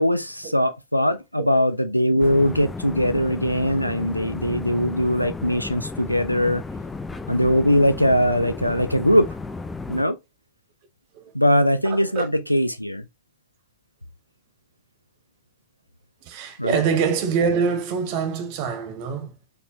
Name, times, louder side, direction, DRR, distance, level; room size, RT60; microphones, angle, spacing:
voice 1, 0.0-6.6 7.3-9.3 9.9-10.2 11.3-13.0 16.6-16.8, equal, 90° left, 0.4 m, -21 dB
sound 1, 2.2-10.0, left 3 dB, 10° left, 0.4 m, -34 dB
voice 2, 11.8-12.3 16.2-19.3, right 6 dB, 45° right, 1.0 m, -25 dB
4.2 x 3.2 x 2.8 m
figure-of-eight pair, 90°, 0 cm